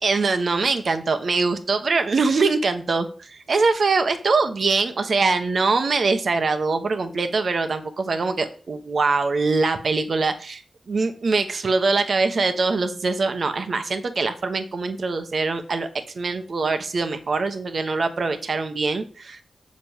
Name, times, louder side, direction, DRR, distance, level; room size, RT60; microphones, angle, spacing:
voice 1, 0.0-10.6 10.9-15.9 16.1-19.4, right 4 dB, 70° right, 8 dB, 1.1 m, -23 dB
7.5 x 5.2 x 7.2 m, 0.41 s
cardioid pair, 45°, 0 cm